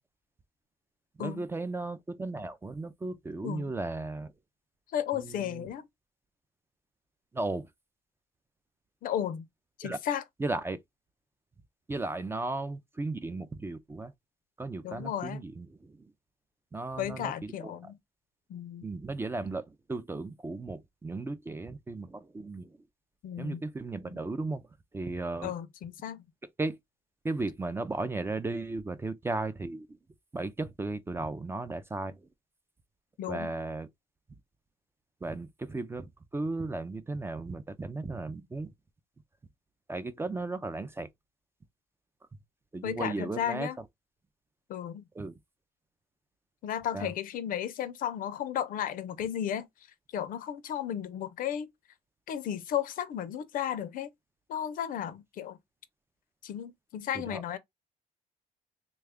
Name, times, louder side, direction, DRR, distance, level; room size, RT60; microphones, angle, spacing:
voice 1, 1.2-4.3 5.1-5.7 7.3-7.7 9.8-10.0 10.4-10.8 11.9-14.1 14.6-16.0 16.7-17.7 18.8-22.8 23.4-24.6 24.9-25.5 26.6-26.8 27.2-29.9 30.3-32.3 33.3-33.9 35.2-38.7 39.9-41.1 42.7-43.8 45.1-45.3 46.9-47.1 57.1-57.4, right 2 dB, 15° right, 0.3 m, -35 dB
voice 2, 4.9-5.8 9.0-9.5 9.8-10.2 14.8-15.4 17.0-18.0 18.5-18.9 23.2-23.6 24.1-24.2 25.4-26.2 33.2-33.5 42.8-43.8 44.7-45.1 46.6-49.7 50.1-51.7 52.3-54.1 54.5-55.6 56.4-57.6, left 10 dB, 65° left, 0.5 m, -34 dB
3.1 x 2.3 x 3.4 m
cardioid pair, 120°, 15 cm